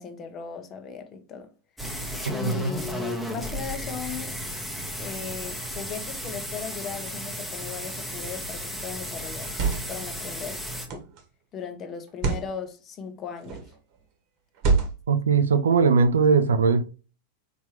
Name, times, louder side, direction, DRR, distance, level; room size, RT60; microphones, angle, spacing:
voice 1, 0.0-1.5 2.3-4.4 5.0-9.5 9.9-10.6 11.5-13.6, left 6 dB, 30° left, 0.7 m, -37 dB
sound 1, 1.8-10.9, equal, ahead, 0.9 m, -34 dB
voice 2, 2.4-2.8 15.1-16.9, right 5 dB, 70° right, 0.5 m, -20 dB
sound 2, 8.2-8.5 9.3-10.1 10.9-11.2 12.1-12.5 13.4-13.8 14.5-15.2, right 4 dB, 40° right, 1.1 m, -27 dB
4.3 x 3.3 x 3.0 m
figure-of-eight pair, 90°, 0 cm